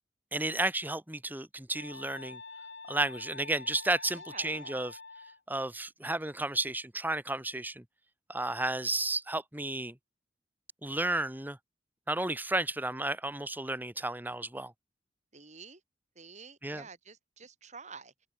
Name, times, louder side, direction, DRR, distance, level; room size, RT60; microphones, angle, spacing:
voice 1, 0.3-2.4 2.9-5.0 5.5-7.8 8.3-10.0 10.8-11.6 12.1-14.7 16.6-16.8, right 2 dB, 10° right, 1.7 m, -32 dB
sound 1, 1.8-5.4, left 4 dB, 70° left, 5.6 m, -47 dB
voice 2, 4.1-4.9 15.3-15.8 16.2-18.3, right 4 dB, 40° right, 7.8 m, -50 dB
open air
head